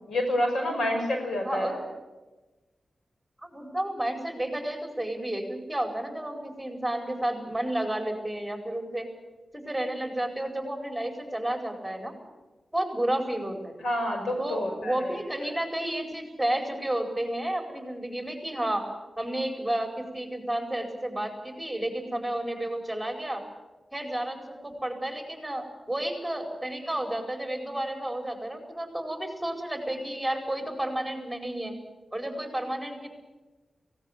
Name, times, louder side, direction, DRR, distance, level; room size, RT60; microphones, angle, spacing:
voice 1, 0.1-1.8 13.8-15.5, left 1 dB, 85° left, 3 dB, 5.7 m, -29 dB
voice 2, 1.4-1.8 3.4-9.1 9.5-12.1 12.7-13.8 14.4-18.8 19.2-23.4 23.9-31.7 32.1-33.1, right 1 dB, 5° right, 3 dB, 4.8 m, -31 dB
17.5 x 17.0 x 9.2 m, 1.2 s
cardioid pair, 60°, 0 cm